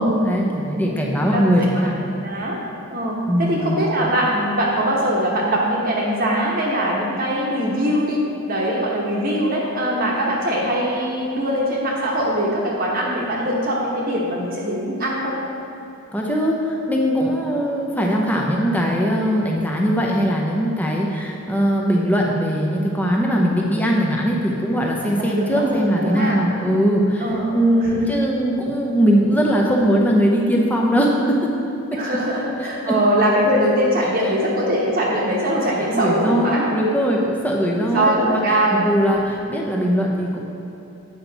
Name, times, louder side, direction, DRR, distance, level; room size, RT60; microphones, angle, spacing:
voice 1, 0.0-1.9 3.3-3.8 16.1-31.5 31.9-32.0 32.8-32.9 35.9-40.4, equal, 5° left, -2 dB, 0.8 m, -20 dB
voice 2, 0.9-1.4 2.2-2.6 2.9-8.2 8.5-15.4 25.0-26.4 27.2-28.0 31.9-36.6 37.8-38.9, right 1 dB, 40° right, -4 dB, 1.0 m, -22 dB
8.8 x 5.8 x 4.0 m, 2.9 s
head